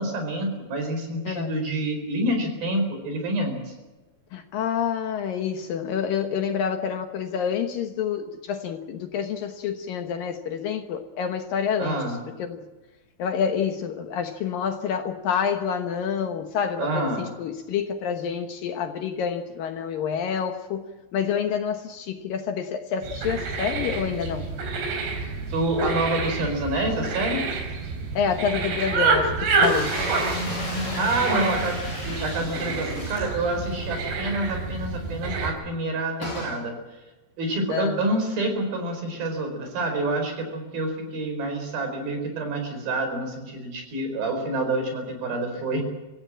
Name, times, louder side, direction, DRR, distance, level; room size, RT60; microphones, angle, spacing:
voice 1, 0.0-3.7 11.8-12.2 16.8-17.3 25.5-27.5 31.0-36.7 37.4-45.8, right 1 dB, 60° right, 5 dB, 6.3 m, -27 dB
voice 2, 4.3-12.6 13.2-24.4 28.1-29.9 37.7-38.0, left 7 dB, 65° left, 6 dB, 2.5 m, -28 dB
sound 1, 23.0-35.5, right 4 dB, 80° right, 6.2 m, -28 dB
sound 2, 29.6-33.8 34.1-34.2 34.5-34.6 36.2-36.6, left 1 dB, 30° left, 7.8 m, -33 dB
25.0 x 16.0 x 8.7 m, 1.2 s
omnidirectional pair, 4.9 m